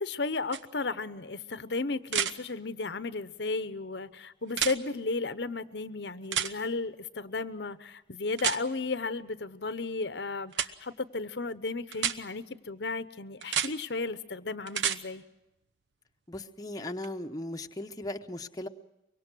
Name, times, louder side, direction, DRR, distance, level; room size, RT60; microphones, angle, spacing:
voice 1, 0.0-15.2, left 3 dB, 70° left, 13 dB, 0.9 m, -34 dB
sound 1, 0.5-0.6 2.1-2.3 4.5-4.8 6.3-6.5 8.4-8.6 10.5-10.7 11.9-12.2 13.4-13.7 14.7-15.0 17.0-17.1, right 9 dB, 80° right, 1.0 m, -29 dB
voice 2, 16.3-18.7, left 1 dB, 20° left, 4 dB, 0.9 m, -37 dB
24.5 x 23.0 x 6.2 m, 0.92 s
head